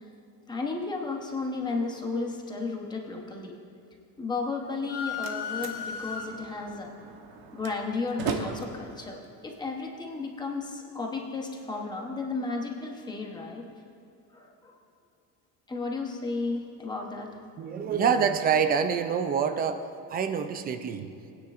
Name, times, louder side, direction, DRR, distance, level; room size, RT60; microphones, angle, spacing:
voice 1, 0.5-3.5 4.2-6.9 7.5-9.2 9.4-13.7 14.3-14.8 15.7-17.3, left 3 dB, 10° left, 1 dB, 0.9 m, -33 dB
Slam, 4.7-10.6, right 5 dB, 65° right, 1.0 m, -39 dB
sound 1, 4.9-6.7, left 7 dB, 80° left, 1.2 m, -35 dB
voice 2, 17.6-19.8 20.1-21.1, right 7 dB, 25° right, 9 dB, 0.3 m, -26 dB
20.5 x 9.6 x 2.5 m, 2.7 s
cardioid pair, 175°, 38 cm